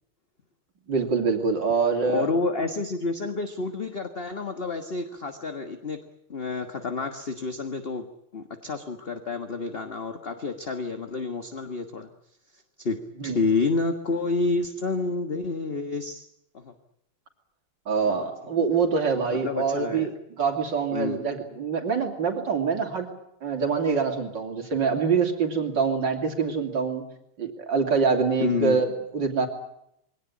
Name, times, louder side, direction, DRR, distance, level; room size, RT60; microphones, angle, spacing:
voice 1, 0.9-2.3 13.2-13.5 17.9-23.1 23.4-27.0 27.4-29.5, right 5 dB, 55° right, 4 dB, 3.5 m, -25 dB
voice 2, 2.1-6.0 6.3-8.0 8.3-12.1 12.8-16.3 16.5-16.7 18.0-18.3 19.4-20.1 20.9-21.2 28.4-28.8, left 3 dB, 30° left, 7 dB, 1.4 m, -29 dB
22.5 x 18.0 x 9.8 m, 0.76 s
omnidirectional pair, 2.4 m